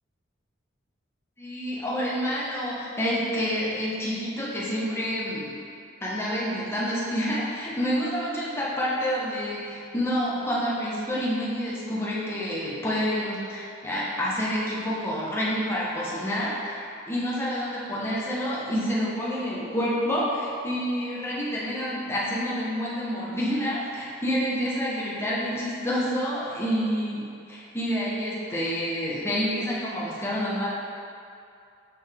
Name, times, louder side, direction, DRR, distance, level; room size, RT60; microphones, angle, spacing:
voice 1, 1.4-5.5 6.0-27.2 27.5-30.7, equal, 15° left, -7 dB, 1.3 m, -28 dB
6.8 x 5.2 x 3.7 m, 2.5 s
head